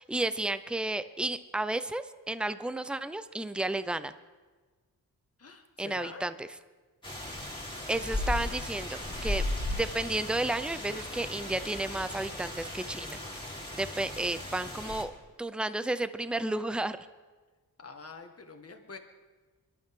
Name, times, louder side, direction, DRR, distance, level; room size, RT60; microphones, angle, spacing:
voice 1, 0.0-4.1 5.8-6.5 7.9-9.4 9.7-13.4 13.8-15.1 15.4-17.0, right 2 dB, 5° right, 13 dB, 0.6 m, -32 dB
voice 2, 5.4-6.3 17.8-19.0, left 4 dB, 40° left, 4 dB, 1.8 m, -46 dB
sound 1, 7.0-15.0, left 1 dB, 15° left, 3.3 m, -36 dB
24.0 x 11.5 x 3.8 m, 1.3 s
cardioid pair, 70°, 38 cm